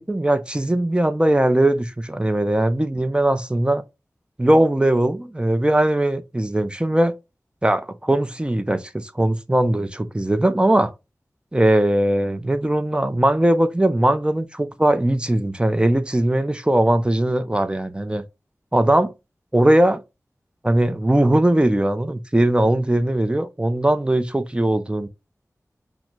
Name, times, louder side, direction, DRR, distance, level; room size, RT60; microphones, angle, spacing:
voice 1, 0.0-3.8 4.4-7.1 7.6-10.9 11.5-18.2 18.7-19.1 19.5-20.0 20.6-25.1, right 1 dB, 15° right, 0.5 m, -19 dB
5.8 x 2.0 x 2.3 m
wide cardioid pair, 65°, 6 cm